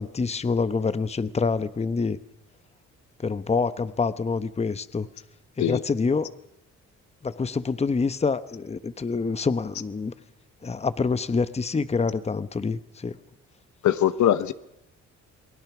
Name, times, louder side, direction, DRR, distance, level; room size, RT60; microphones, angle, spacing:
voice 1, 0.0-2.2 3.2-5.1 5.6-6.3 7.2-10.1 10.6-13.2, left 4 dB, 20° left, 13 dB, 1.0 m, -26 dB
voice 2, 13.8-14.5, left 11 dB, 70° left, 13 dB, 1.1 m, -21 dB
28.5 x 20.0 x 6.1 m, 0.85 s
cardioid pair, 90°, 30 cm